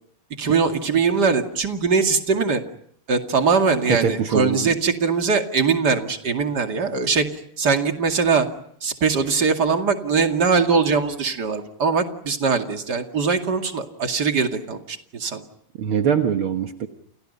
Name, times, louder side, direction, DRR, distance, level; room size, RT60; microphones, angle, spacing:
voice 1, 0.4-2.6 3.1-8.5 8.8-15.4, right 5 dB, 30° right, 4 dB, 2.2 m, -21 dB
voice 2, 3.9-4.7 15.8-16.9, right 7 dB, 65° right, 5 dB, 1.3 m, -22 dB
29.5 x 29.5 x 5.5 m, 0.68 s
omnidirectional pair, 4.5 m